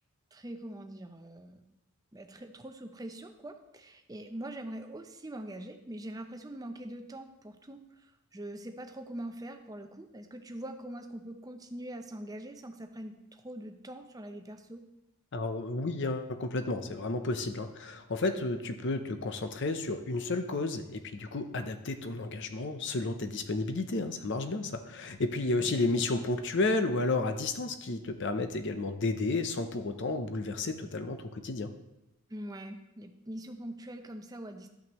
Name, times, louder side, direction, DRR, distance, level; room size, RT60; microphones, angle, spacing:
voice 1, 0.3-1.6 2.1-14.8 25.6-25.7 32.3-34.7, right 1 dB, 15° right, 5 dB, 0.6 m, -43 dB
voice 2, 15.3-31.7, left 2 dB, 50° left, 8 dB, 0.7 m, -32 dB
13.0 x 5.8 x 3.1 m, 0.95 s
head